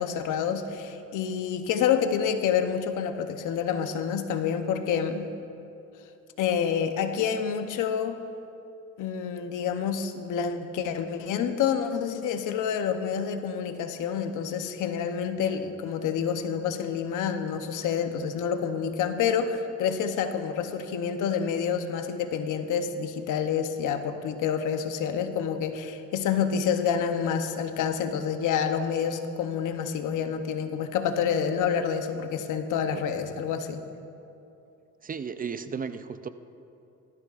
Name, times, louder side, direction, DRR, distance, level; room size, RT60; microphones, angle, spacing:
voice 1, 0.0-5.3 6.4-8.2 9.0-33.8, left 7 dB, 85° left, 7 dB, 0.8 m, -28 dB
voice 2, 35.0-36.3, right 6 dB, 30° right, 11 dB, 0.5 m, -34 dB
18.0 x 13.5 x 2.5 m, 2.7 s
cardioid pair, 90°, 30 cm